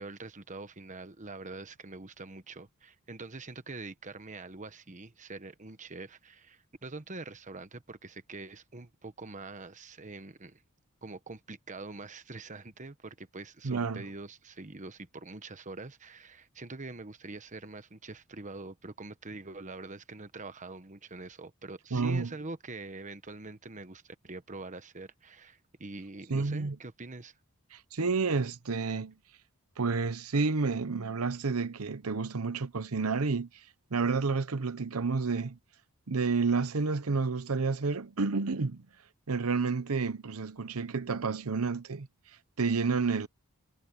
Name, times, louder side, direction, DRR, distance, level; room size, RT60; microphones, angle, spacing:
voice 1, 0.0-10.6 11.0-27.3, right 3 dB, 35° right, 1.1 m, -44 dB
voice 2, 13.6-14.0 21.9-22.3 26.3-26.8 27.7-29.1 29.8-33.5 33.9-35.6 36.1-38.8 39.3-42.1 42.6-43.3, right 4 dB, 85° right, 0.9 m, -30 dB
head